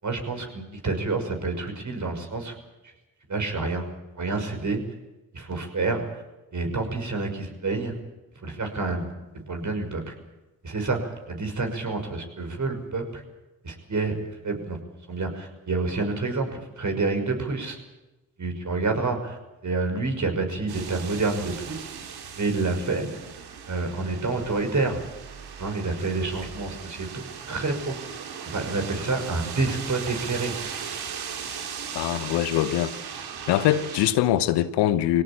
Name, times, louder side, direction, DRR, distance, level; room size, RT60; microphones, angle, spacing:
voice 1, 0.0-2.5 3.3-3.9 4.1-4.8 5.3-6.0 6.5-7.9 8.4-9.1 9.5-10.1 10.6-13.2 13.6-14.2 14.4-14.8 15.1-17.8 18.4-21.8 22.4-23.2 23.7-25.0 25.6-28.0 28.4-30.5, right 3 dB, 45° right, 5.9 m, -28 dB
sound 1, 20.7-34.1, right 7 dB, 70° right, 2.6 m, -38 dB
voice 2, 31.9-32.9 33.5-35.2, left 12 dB, 80° left, 1.1 m, -23 dB
22.0 x 17.5 x 8.8 m
hypercardioid pair, 40°, 40 cm